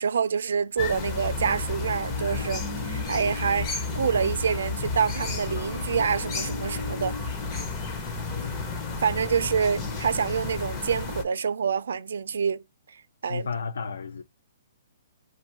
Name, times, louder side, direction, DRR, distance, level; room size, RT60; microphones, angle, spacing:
voice 1, 0.0-7.2 9.0-12.6 12.9-13.5, right 6 dB, 70° right, 0.3 m, -27 dB
sound 1, 0.8-11.2, left 4 dB, 20° left, 0.5 m, -32 dB
voice 2, 8.1-8.6 13.2-14.2, left 5 dB, 85° left, 0.4 m, -34 dB
2.6 x 2.3 x 2.7 m
hypercardioid pair, 170°, 0 cm